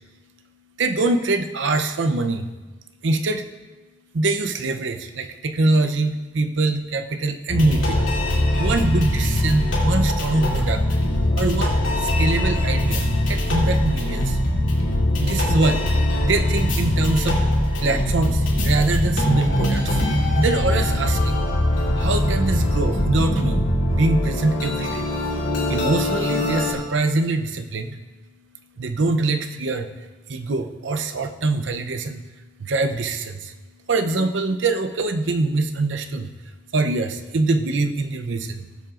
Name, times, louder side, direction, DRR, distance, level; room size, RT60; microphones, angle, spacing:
voice 1, 0.8-2.5 3.0-3.5 4.1-8.1 8.6-10.9 11.4-14.4 15.2-17.4 17.8-20.1 20.3-21.5 22.0-23.6 23.9-25.1 25.7-28.0 28.8-33.6 33.9-38.7, right 2 dB, 75° right, 7 dB, 0.6 m, -24 dB
sound 1, 7.5-26.7, left 1 dB, 80° left, 2.6 m, -21 dB
16.0 x 7.6 x 2.5 m, 1.2 s
head